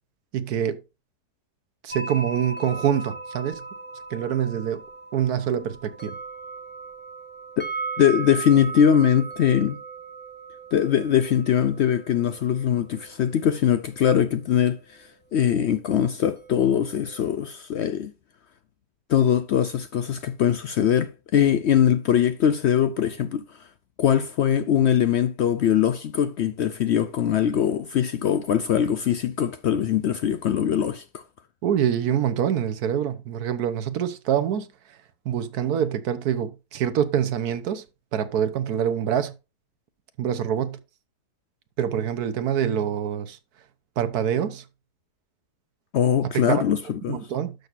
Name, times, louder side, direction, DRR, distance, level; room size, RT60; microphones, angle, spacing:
voice 1, 0.3-0.8 1.8-3.6 4.1-4.8 5.1-6.2 31.6-34.7 35.2-37.8 38.1-39.3 40.2-40.8 41.8-43.4 44.0-44.6 46.5-46.6 47.1-47.5, right 9 dB, 70° right, 1.3 m, -25 dB
sound 1, 1.9-15.1 15.3-15.4 16.4-17.4, right 4 dB, 10° left, 0.9 m, -38 dB
voice 2, 8.0-9.8 10.7-18.1 19.1-23.6 24.0-31.2 45.9-47.2, left 9 dB, 85° left, 0.5 m, -22 dB
11.5 x 6.3 x 2.5 m
omnidirectional pair, 1.8 m